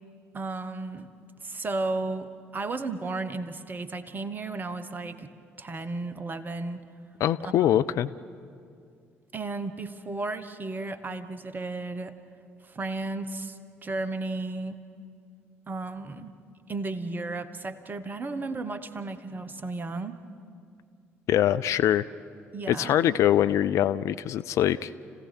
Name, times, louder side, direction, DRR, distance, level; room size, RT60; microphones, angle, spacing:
voice 1, 0.3-1.1 1.4-5.3 5.6-6.8 7.4-7.8 9.3-12.1 12.7-14.8 15.7-16.3 16.7-20.2 22.5-22.9, right 3 dB, 30° right, 12 dB, 1.2 m, -34 dB
voice 2, 7.2-8.1 21.3-22.0 22.7-24.9, left 11 dB, 50° left, 14 dB, 0.4 m, -23 dB
29.5 x 16.5 x 6.3 m, 2.3 s
figure-of-eight pair, 50°, 6 cm